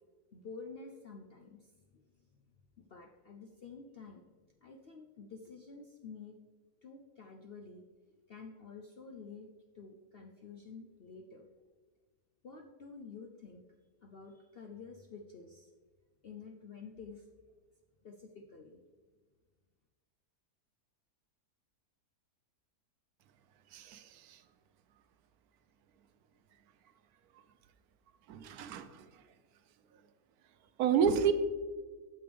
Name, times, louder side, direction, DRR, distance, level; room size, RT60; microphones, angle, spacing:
voice 1, 0.3-2.1 2.8-4.3 4.6-6.4 6.8-7.8 8.3-9.5 9.7-11.5 12.4-13.6 14.0-15.7 16.2-17.3 18.0-18.8, left 4 dB, 65° left, 2 dB, 0.6 m, -50 dB
voice 2, 23.7-24.4 28.3-29.1 30.8-31.3, right 7 dB, 75° right, 10 dB, 1.1 m, -30 dB
8.6 x 6.8 x 3.4 m, 1.4 s
omnidirectional pair, 1.7 m